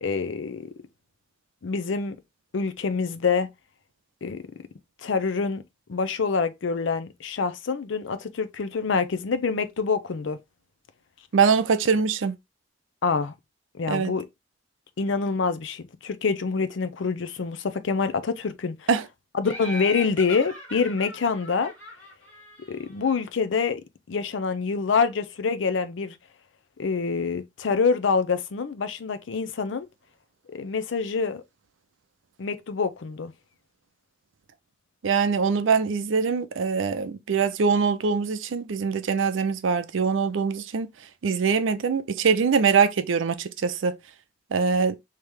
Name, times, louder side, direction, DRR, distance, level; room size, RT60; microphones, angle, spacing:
voice 1, 0.0-0.7 1.6-2.2 2.5-3.5 4.2-4.4 5.0-5.6 5.9-10.4 13.0-13.3 13.7-14.3 15.0-18.9 19.3-21.7 22.7-23.8 24.1-26.2 26.8-29.9 30.5-31.4 32.4-33.3, left 5 dB, 70° left, 0.5 m, -26 dB
voice 2, 11.3-12.3 13.9-14.1 18.9-19.0 35.0-40.9 41.2-44.0 44.5-45.0, right 5 dB, 80° right, 0.5 m, -23 dB
Laughter, 19.4-23.1, left 1 dB, 5° left, 1.5 m, -40 dB
3.2 x 2.9 x 3.4 m
head